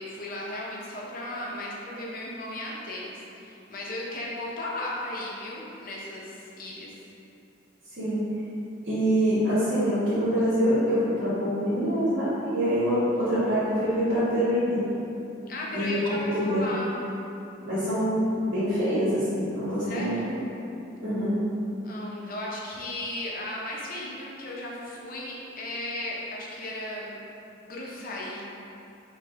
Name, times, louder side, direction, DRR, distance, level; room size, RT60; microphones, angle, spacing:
voice 1, 0.0-6.9 13.1-13.3 15.5-17.0 19.8-20.3 21.8-27.2 27.6-28.4, left 1 dB, 45° left, -4 dB, 0.8 m, -36 dB
voice 2, 8.9-14.8 15.7-16.7 17.6-18.2 18.5-20.4 21.0-21.4, equal, 80° right, -12 dB, 1.4 m, -25 dB
3.4 x 3.3 x 4.6 m, 2.9 s
head